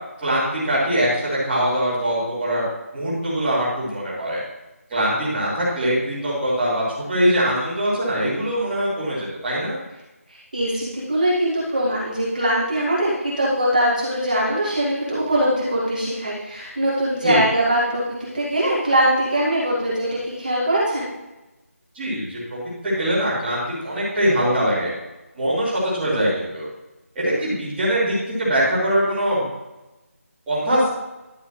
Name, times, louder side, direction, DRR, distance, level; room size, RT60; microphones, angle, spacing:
voice 1, 0.2-2.6 2.9-4.4 4.9-6.8 7.1-9.7 17.2-17.4 21.9-22.6 22.8-24.9 25.3-26.7 27.1-29.4 30.5-30.9, equal, 5° right, -16 dB, 2.9 m, -22 dB
voice 2, 10.3-21.1, right 1 dB, 30° right, -6 dB, 2.1 m, -22 dB
12.0 x 8.9 x 3.2 m, 1.0 s
figure-of-eight pair, 180°, 8 cm